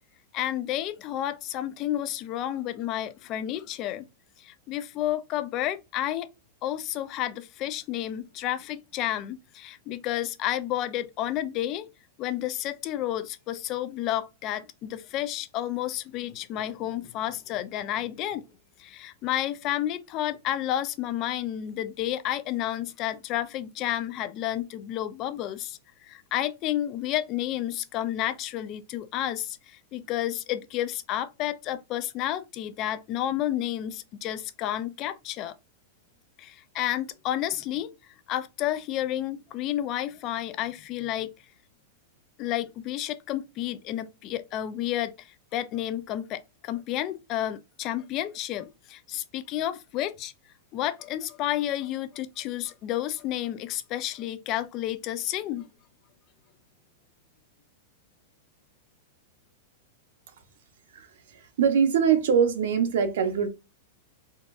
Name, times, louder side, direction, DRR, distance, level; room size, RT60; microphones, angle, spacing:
voice 1, 0.3-4.1 4.4-6.3 6.6-11.9 12.2-18.5 18.8-25.8 26.0-35.5 36.4-37.9 38.3-41.3 42.4-45.3 45.5-50.3 50.7-55.7, left 12 dB, 30° left, 0.3 m, -31 dB
voice 2, 60.9-63.5, right 7 dB, 70° right, 0.7 m, -23 dB
3.8 x 2.3 x 2.4 m
supercardioid pair, 155°, 0 cm